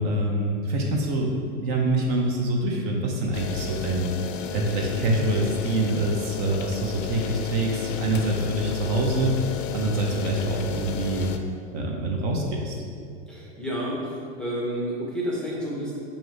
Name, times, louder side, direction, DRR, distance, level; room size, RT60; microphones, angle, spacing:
voice 1, 0.0-11.3 11.7-12.8, right 1 dB, 40° right, 0 dB, 0.6 m, -25 dB
sound 1, 3.3-11.4, left 7 dB, 70° left, 0.5 m, -33 dB
voice 2, 13.3-15.9, equal, ahead, -6 dB, 0.6 m, -30 dB
4.6 x 2.7 x 3.2 m, 2.3 s
hypercardioid pair, 110°, 39 cm